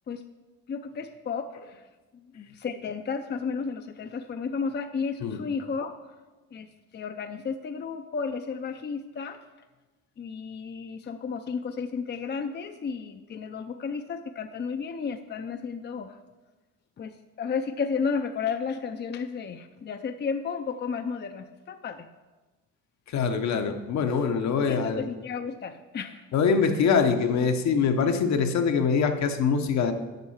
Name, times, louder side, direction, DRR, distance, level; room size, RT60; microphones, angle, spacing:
voice 1, 0.7-1.9 2.1-6.1 6.5-9.4 10.2-16.2 17.0-22.1 24.5-26.3, left 5 dB, 35° left, 8 dB, 0.5 m, -33 dB
voice 2, 23.1-25.0 26.3-29.9, left 6 dB, 65° left, 6 dB, 1.0 m, -24 dB
8.1 x 5.4 x 7.1 m, 1.2 s
cardioid pair, 90°, 30 cm